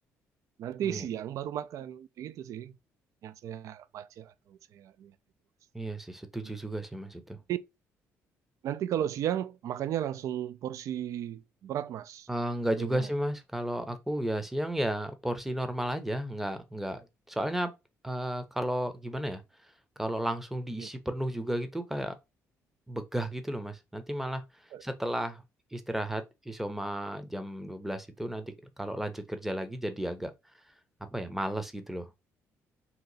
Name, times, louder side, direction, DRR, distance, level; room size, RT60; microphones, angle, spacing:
voice 1, 0.6-2.8 3.2-5.1 7.5-7.6 8.6-12.3 12.8-13.1 20.8-20.9 24.7-24.8, right 10 dB, 65° right, 0.3 m, -35 dB
voice 2, 5.7-7.4 12.3-17.7 18.0-19.4 20.0-22.1 22.9-24.4 24.8-25.4 25.7-30.3 31.1-32.1, right 1 dB, 5° right, 0.6 m, -33 dB
2.9 x 2.3 x 3.9 m
cardioid pair, 85°, 6 cm